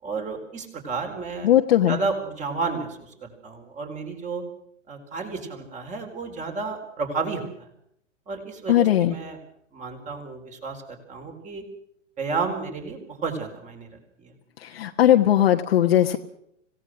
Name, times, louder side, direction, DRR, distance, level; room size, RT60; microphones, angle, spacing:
voice 1, 0.0-1.5 1.9-4.4 4.9-7.7 8.3-9.4 9.7-11.6 12.2-14.3, right 4 dB, 20° right, 6 dB, 4.4 m, -32 dB
voice 2, 1.4-2.0 8.7-9.1 14.6-16.2, left 12 dB, 50° left, 3 dB, 1.4 m, -19 dB
26.0 x 17.5 x 6.3 m, 0.71 s
figure-of-eight pair, 110°, 37 cm